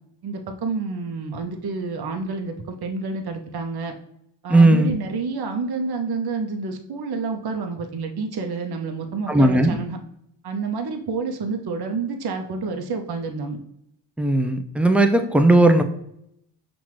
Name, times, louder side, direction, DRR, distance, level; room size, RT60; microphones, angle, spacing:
voice 1, 0.2-3.9 4.4-10.0 10.4-13.6, right 4 dB, 50° right, 4 dB, 0.8 m, -29 dB
voice 2, 4.5-5.0 9.3-9.8 14.2-15.8, right 2 dB, 5° right, 7 dB, 0.5 m, -16 dB
5.7 x 2.6 x 3.1 m, 0.76 s
supercardioid pair, 45°, 49 cm